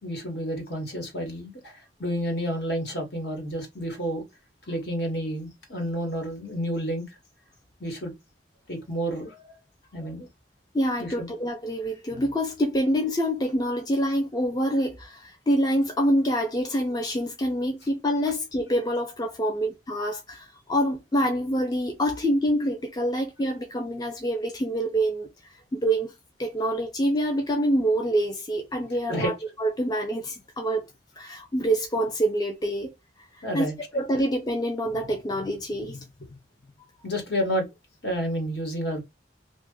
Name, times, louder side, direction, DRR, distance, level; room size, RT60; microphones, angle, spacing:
voice 1, 0.0-4.2 4.7-7.0 7.8-8.1 8.7-9.5 9.9-10.3 11.0-11.3 29.1-29.3 33.4-34.0 36.2-36.3 37.0-37.7 38.0-39.0, equal, 60° left, 1.4 m, -30 dB
voice 2, 10.7-26.1 26.4-30.9 31.2-32.9 33.2-36.0, equal, 20° left, 0.5 m, -26 dB
2.7 x 2.4 x 3.6 m
head